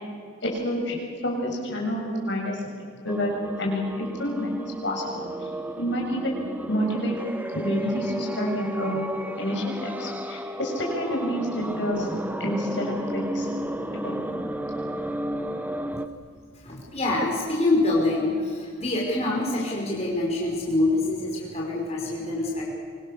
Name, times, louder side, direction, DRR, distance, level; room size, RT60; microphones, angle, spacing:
voice 1, 0.4-1.0 1.2-2.6 3.0-3.3 3.6-5.3 5.8-6.4 6.7-7.2 7.5-12.1 12.4-13.5 13.9-14.2, equal, 65° left, -1 dB, 7.0 m, -28 dB
sound 1, 3.1-16.1, right 1 dB, 10° right, 1.1 m, -33 dB
voice 2, 16.5-22.7, left 2 dB, 35° left, -3 dB, 5.5 m, -25 dB
25.5 x 25.0 x 6.9 m, 2.2 s
head